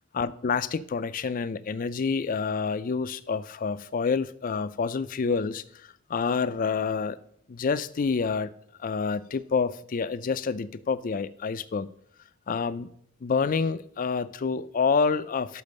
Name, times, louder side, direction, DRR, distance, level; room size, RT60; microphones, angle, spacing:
voice 1, 0.1-7.2 7.5-8.5 8.8-11.9 12.5-12.9 13.2-15.6, left 5 dB, 40° left, 15 dB, 0.4 m, -28 dB
6.1 x 5.2 x 6.6 m, 0.69 s
head